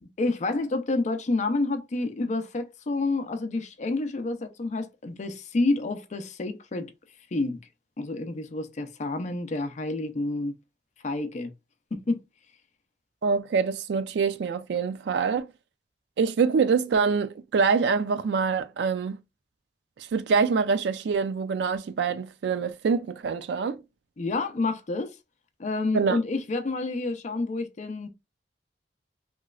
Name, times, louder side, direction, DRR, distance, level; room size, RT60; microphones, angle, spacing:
voice 1, 0.0-6.9 7.3-7.6 8.0-10.5 11.0-11.5 11.9-12.2 24.2-25.2 25.6-28.1, left 2 dB, 40° left, 0.4 m, -29 dB
voice 2, 13.2-15.5 16.2-19.2 20.1-23.8 25.9-26.2, right 5 dB, 70° right, 0.3 m, -25 dB
3.0 x 3.0 x 2.3 m
head